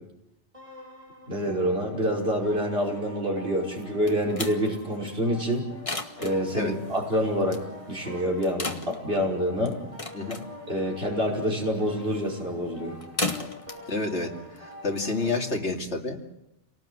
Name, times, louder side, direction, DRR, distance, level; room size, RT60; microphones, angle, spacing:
sound 1, 0.5-15.6, left 1 dB, 25° right, 8.2 m, -46 dB
voice 1, 1.3-5.7 6.2-7.6 7.9-9.7 10.7-13.0, equal, 55° right, 0 dB, 5.7 m, -27 dB
sound 2, 3.8-15.2, left 2 dB, 30° left, 1.6 m, -38 dB
voice 2, 13.9-16.2, left 3 dB, 70° left, 1 dB, 3.0 m, -29 dB
28.5 x 18.5 x 7.9 m, 0.88 s
omnidirectional pair, 1.2 m